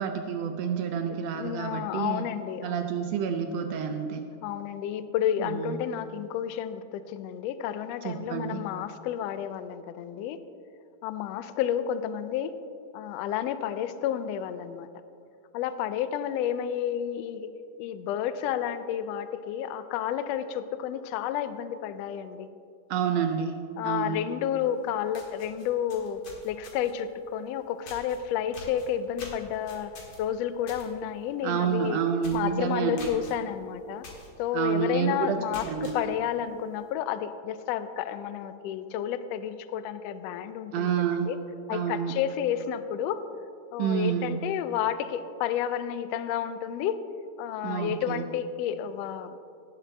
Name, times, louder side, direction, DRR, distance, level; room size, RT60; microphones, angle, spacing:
voice 1, 0.0-2.2 2.6-4.2 5.4-5.8 8.0-8.6 22.9-23.6 23.8-24.2 31.4-33.1 34.5-36.1 40.7-41.3 41.7-42.1 43.8-44.4 47.6-48.3, right 7 dB, 75° right, 5 dB, 1.5 m, -29 dB
voice 2, 1.3-2.9 4.4-10.4 11.0-12.5 12.9-14.9 15.5-17.5 17.8-22.5 23.8-32.0 32.3-34.0 34.4-41.4 41.7-43.2 43.7-47.0 47.4-49.4, left 9 dB, 90° left, 12 dB, 1.4 m, -31 dB
sound 1, 24.7-24.8 25.1-27.0 27.9-28.2 28.5-30.9 31.2-31.5 31.8-31.9 32.2-32.5 33.0-33.3 34.0-34.3 34.7-34.8 35.3-36.0, left 3 dB, 45° left, 2.1 m, -45 dB
17.5 x 7.5 x 3.3 m, 2.4 s
omnidirectional pair, 3.5 m